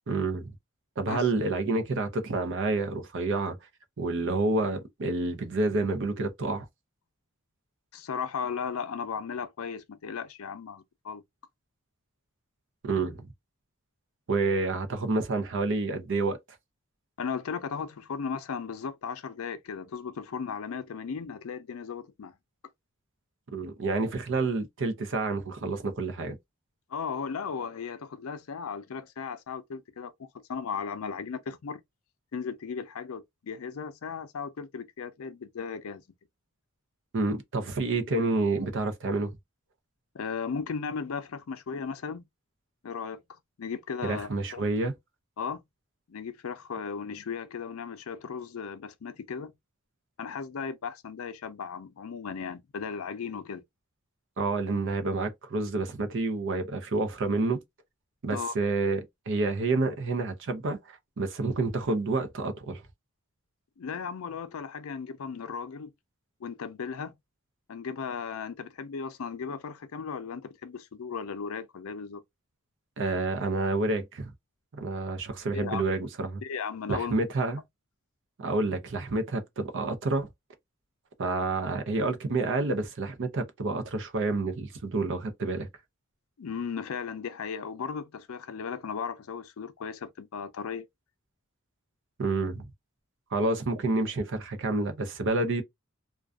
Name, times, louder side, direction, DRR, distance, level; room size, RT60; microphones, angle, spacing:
voice 1, 0.1-0.5 1.0-3.5 4.0-6.7 12.8-13.3 14.3-16.4 23.5-26.4 37.1-39.3 44.0-44.9 54.4-57.6 58.2-59.0 59.3-62.8 73.0-74.3 74.7-76.4 76.9-77.6 78.4-80.3 81.2-85.7 92.2-92.6 93.3-95.6, right 3 dB, 60° right, 0.5 m, -29 dB
voice 2, 7.9-11.2 17.2-22.3 26.9-31.8 32.3-36.0 40.1-42.3 42.8-43.2 43.6-44.6 45.4-45.6 46.1-49.5 50.2-53.6 58.3-58.5 63.8-65.9 66.4-67.1 67.7-72.2 75.5-75.8 76.4-77.2 86.4-90.8, left 6 dB, 70° left, 0.4 m, -36 dB
2.4 x 2.2 x 2.2 m
head